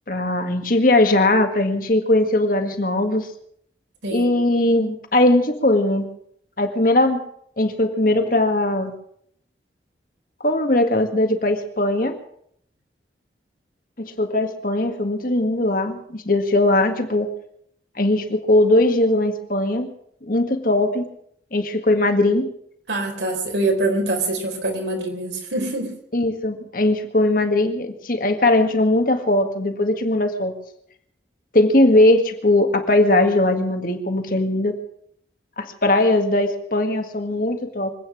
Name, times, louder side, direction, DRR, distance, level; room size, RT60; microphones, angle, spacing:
voice 1, 0.1-3.3 4.1-6.1 6.6-7.2 7.6-8.9 10.4-12.2 14.0-17.3 18.0-19.9 20.2-21.1 21.5-22.5 26.1-30.5 31.5-34.8 35.6-37.9, left 1 dB, 50° left, 6 dB, 1.9 m, -19 dB
voice 2, 22.9-25.9, right 2 dB, 80° right, 3 dB, 4.1 m, -24 dB
24.5 x 9.3 x 6.4 m, 0.68 s
head